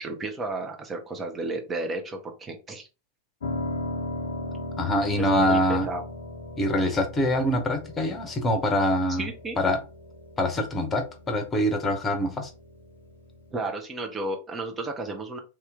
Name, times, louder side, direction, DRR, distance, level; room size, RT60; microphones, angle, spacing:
voice 1, 0.0-2.9 5.2-6.0 9.1-9.6 13.5-15.4, right 2 dB, 20° right, 3 dB, 1.0 m, -33 dB
Piano, 3.4-13.5, left 2 dB, 65° left, 0.6 m, -38 dB
voice 2, 4.8-5.9 6.6-9.3 9.6-9.8 10.4-12.5, left 1 dB, 20° left, 6 dB, 1.0 m, -24 dB
3.6 x 3.0 x 3.7 m, 0.30 s
figure-of-eight pair, 90°, 0 cm